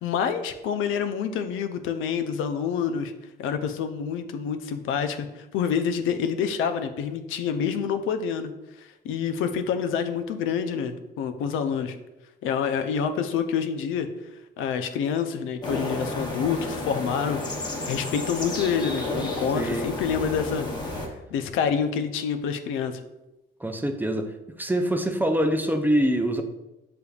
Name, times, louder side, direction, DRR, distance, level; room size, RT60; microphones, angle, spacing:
voice 1, 0.0-3.1 3.4-8.5 8.8-12.0 12.4-14.1 14.6-17.4 17.9-20.7 21.3-23.0, left 7 dB, 85° left, 8 dB, 0.5 m, -27 dB
sound 1, 15.6-21.1, left 1 dB, 20° left, 1.0 m, -31 dB
voice 2, 19.5-19.9 23.6-24.3 24.6-26.4, right 1 dB, 10° right, 5 dB, 0.5 m, -24 dB
6.6 x 3.4 x 2.3 m, 0.97 s
cardioid pair, 90°, 20 cm